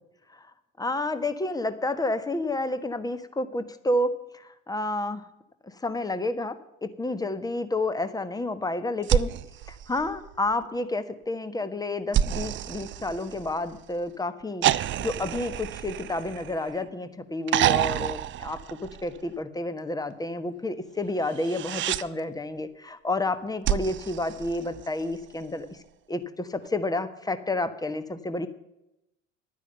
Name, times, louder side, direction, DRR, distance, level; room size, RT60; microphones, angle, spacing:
voice 1, 0.8-5.2 5.6-9.3 9.7-25.7 26.1-28.5, left 2 dB, 10° left, 12 dB, 1.2 m, -30 dB
sound 1, 9.0-10.6 12.1-13.8 14.6-16.9 17.5-19.3 21.3-22.1 23.6-25.1 26.7-26.8, right 11 dB, 30° right, 0.5 m, -28 dB
12.0 x 9.8 x 6.8 m, 0.89 s
hypercardioid pair, 75°, 38 cm